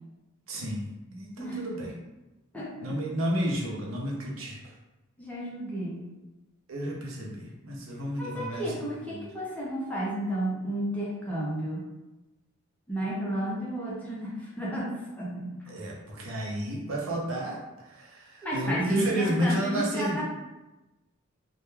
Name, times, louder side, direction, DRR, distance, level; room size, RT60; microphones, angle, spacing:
voice 1, 0.5-1.9 2.8-4.8 6.7-8.6 9.1-9.2 15.7-20.2, equal, 70° right, -2 dB, 0.6 m, -31 dB
voice 2, 1.4-1.9 2.5-3.0 5.2-6.1 8.2-11.8 12.9-15.7 18.4-20.2, right 1 dB, 5° left, -5 dB, 0.5 m, -32 dB
2.1 x 2.1 x 3.1 m, 1.0 s
head